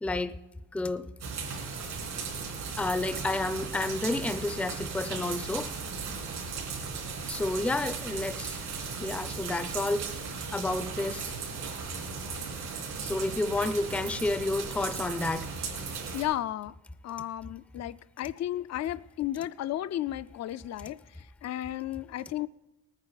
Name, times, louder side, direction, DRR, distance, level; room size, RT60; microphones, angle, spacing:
voice 1, 0.0-0.4 0.7-1.1 2.8-5.7 7.3-8.6 9.0-10.1 10.5-11.3 13.0-15.5, left 2 dB, 5° left, 12 dB, 0.5 m, -30 dB
sound 1, 1.2-16.2, right 5 dB, 80° right, 3.4 m, -36 dB
voice 2, 16.1-16.7 17.0-22.5, left 13 dB, 60° left, 16 dB, 0.5 m, -34 dB
19.0 x 9.8 x 4.0 m, 1.0 s
cardioid pair, 90°, 30 cm